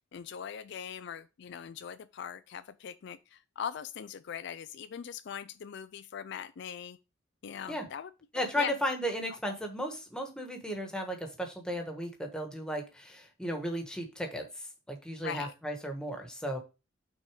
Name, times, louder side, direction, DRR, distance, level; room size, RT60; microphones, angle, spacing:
voice 1, 0.1-7.0 7.4-8.7 9.5-9.6 15.2-15.5, left 8 dB, 60° left, 0.4 m, -41 dB
voice 2, 8.3-14.5 14.9-16.6, equal, 5° left, 1.3 m, -35 dB
6.2 x 4.2 x 4.8 m
head